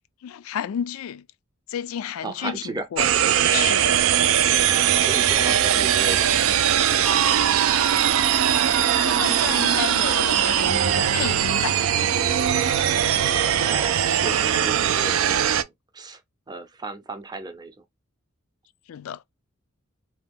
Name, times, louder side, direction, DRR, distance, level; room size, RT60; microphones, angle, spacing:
voice 1, 0.2-1.3 1.7-3.1 3.5-4.1 9.0-11.8 14.8-14.9 18.9-19.2, left 9 dB, 80° left, 0.3 m, -31 dB
voice 2, 2.2-2.9 5.0-7.4 13.5-16.2 16.5-17.8, right 2 dB, 20° right, 0.6 m, -35 dB
sound 1, 3.0-15.6, right 9 dB, 75° right, 0.4 m, -20 dB
2.8 x 2.2 x 3.4 m
head